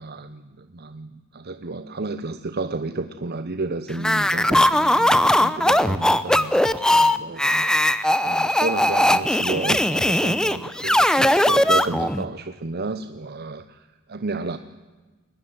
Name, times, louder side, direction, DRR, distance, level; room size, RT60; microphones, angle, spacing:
voice 1, 0.0-14.6, right 3 dB, 45° right, 11 dB, 0.8 m, -32 dB
sound 1, 4.0-12.3, left 1 dB, 5° left, 0.7 m, -19 dB
22.0 x 19.0 x 9.6 m, 1.2 s
head